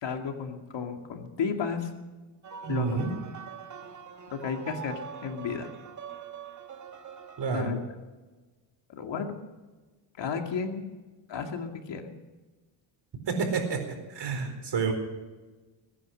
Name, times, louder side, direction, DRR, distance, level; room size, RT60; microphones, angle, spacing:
voice 1, 0.0-1.9 2.7-3.0 4.3-4.9 5.2-5.7 7.5-7.8 8.9-9.3 10.2-10.9 11.3-12.1, left 6 dB, 60° left, 4 dB, 2.4 m, -33 dB
sound 1, 2.4-7.5, right 6 dB, 35° right, 1.4 m, -43 dB
voice 2, 2.6-3.1 7.4-7.8 13.3-13.8 14.1-14.9, right 5 dB, 55° right, 5 dB, 4.5 m, -29 dB
21.0 x 10.0 x 6.4 m, 1.2 s
cardioid pair, 100°, 50 cm